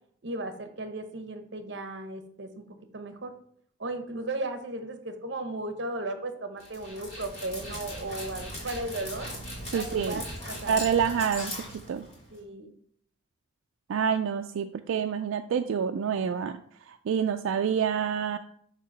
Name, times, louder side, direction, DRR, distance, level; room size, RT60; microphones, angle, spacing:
voice 1, 0.2-3.3 3.8-9.3 9.7-10.8 11.2-11.5 12.3-12.7, right 2 dB, 60° right, 8 dB, 0.8 m, -36 dB
Dog, 6.6-12.4, left 1 dB, 30° left, 2.1 m, -39 dB
voice 2, 9.7-10.2 10.7-12.1 13.9-16.6 16.9-18.4, right 7 dB, 85° right, 7 dB, 0.3 m, -27 dB
6.7 x 2.9 x 5.2 m, 0.67 s
head